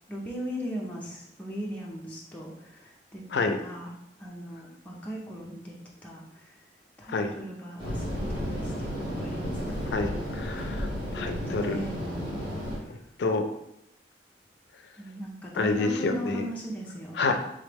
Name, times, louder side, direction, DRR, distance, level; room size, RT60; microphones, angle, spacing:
voice 1, 0.1-3.9 4.2-5.8 6.0-6.5 7.0-9.8 11.1-12.6 12.8-13.0 15.0-17.3, equal, 10° left, -4 dB, 0.5 m, -38 dB
sound 1, 7.8-12.8, equal, 25° right, 1.4 m, -33 dB
voice 2, 9.9-11.8 12.9-13.4 15.5-16.5 17.1-17.3, left 3 dB, 75° left, 6 dB, 0.4 m, -28 dB
3.8 x 3.1 x 3.4 m, 0.80 s
head